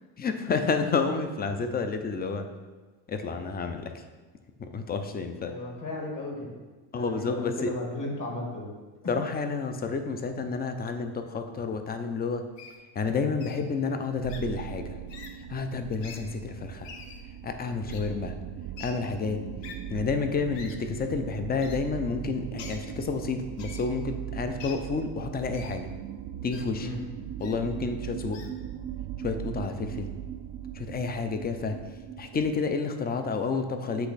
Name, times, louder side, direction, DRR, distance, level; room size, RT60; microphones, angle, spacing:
voice 1, 0.2-2.5 3.1-4.0 4.6-5.5 6.9-7.7 9.1-12.5 12.9-15.0 15.5-16.9 17.4-18.4 18.8-19.4 19.9-25.9 26.4-26.9 27.4-28.4 29.2-30.1 30.7-31.8 32.2-34.1, left 4 dB, 20° left, 7 dB, 0.4 m, -30 dB
voice 2, 5.4-6.5 6.9-8.7 26.8-27.0, left 2 dB, 40° left, 0 dB, 1.7 m, -35 dB
Wild animals, 12.6-12.8 13.4-13.6 14.3-14.4 15.1-15.3 16.0-16.2 16.8-17.2 17.9-18.0 18.8-18.9 19.6-19.8 20.5-20.8 21.6-21.8 22.6-22.8 23.6-23.9 24.6-24.8 25.5-25.8 26.5-26.6 27.4-27.6 28.3-28.5, left 6 dB, 65° left, 0.9 m, -44 dB
sound 1, 14.2-32.6, right 10 dB, 45° right, 0.5 m, -39 dB
7.9 x 3.1 x 4.0 m, 1.3 s
supercardioid pair, 100°, 47 cm